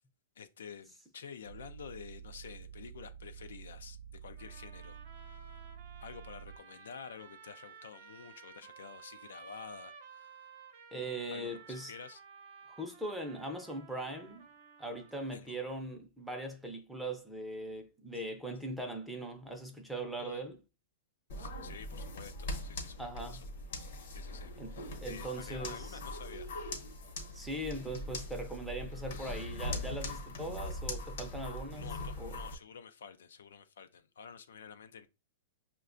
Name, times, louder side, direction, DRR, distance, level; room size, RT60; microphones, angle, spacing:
voice 1, 0.4-5.6 6.0-10.5 11.3-12.2 15.3-15.6 20.2-20.5 21.4-23.4 24.1-26.5 31.7-35.1, left 7 dB, 85° left, 0.4 m, -50 dB
sound 1, 1.5-6.6, right 8 dB, 85° right, 0.3 m, -49 dB
sound 2, 4.4-15.4, right 6 dB, 55° right, 0.7 m, -54 dB
voice 2, 10.9-11.9 12.7-14.5 14.8-20.6 23.0-23.5 24.6-24.7 25.0-26.0 27.3-31.9 32.2-32.4, right 1 dB, ahead, 0.5 m, -40 dB
sound 3, 21.3-32.5, left 2 dB, 65° left, 0.9 m, -41 dB
5.4 x 2.2 x 2.4 m
hypercardioid pair, 145°, 0 cm